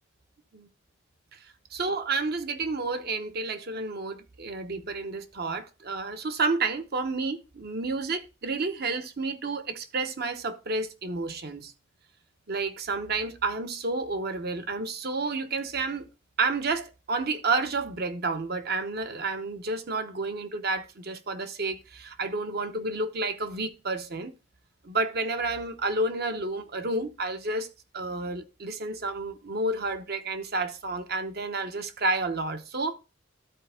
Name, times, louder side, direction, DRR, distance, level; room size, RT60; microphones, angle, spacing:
voice 1, 1.7-11.7 12.5-16.1 16.4-24.3 24.8-27.7 27.9-32.9, right 3 dB, 50° right, 0.9 m, -30 dB
13.0 x 4.3 x 3.4 m
head